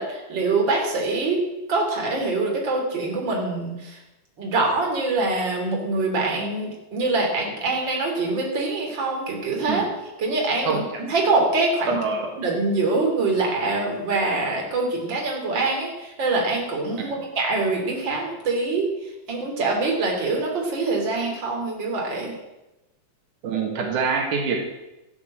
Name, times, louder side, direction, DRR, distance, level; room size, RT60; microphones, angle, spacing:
voice 1, 0.0-1.4 1.7-4.0 4.4-9.8 10.2-12.0 12.4-18.9 19.3-22.4, right 3 dB, 35° right, 0 dB, 3.6 m, -24 dB
voice 2, 11.9-12.3 17.0-17.2 23.4-24.6, right 5 dB, 80° right, 2 dB, 3.1 m, -25 dB
14.0 x 8.2 x 7.8 m, 0.98 s
omnidirectional pair, 3.6 m